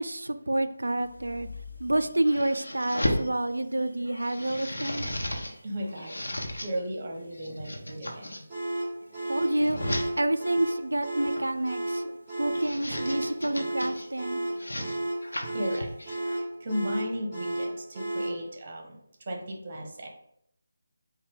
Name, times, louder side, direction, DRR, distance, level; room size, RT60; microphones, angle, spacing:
voice 1, 0.0-1.5 1.8-5.1 9.3-9.8 10.2-14.4, right 1 dB, 85° right, 10 dB, 0.3 m, -28 dB
sound 1, 1.0-3.3 3.8-5.5 5.8-6.7 7.3-8.4 9.0-10.1 11.2-11.6 12.3-14.1 14.5-16.4, left 1 dB, 85° left, 0.8 m, -35 dB
voice 2, 5.6-6.2 6.6-8.4 15.4-16.0 16.3-20.1, equal, 35° right, 2 dB, 0.9 m, -35 dB
sound 2, 8.5-18.4, right 1 dB, 5° right, 1.4 m, -32 dB
4.8 x 2.1 x 3.6 m, 0.73 s
figure-of-eight pair, 160°, 0 cm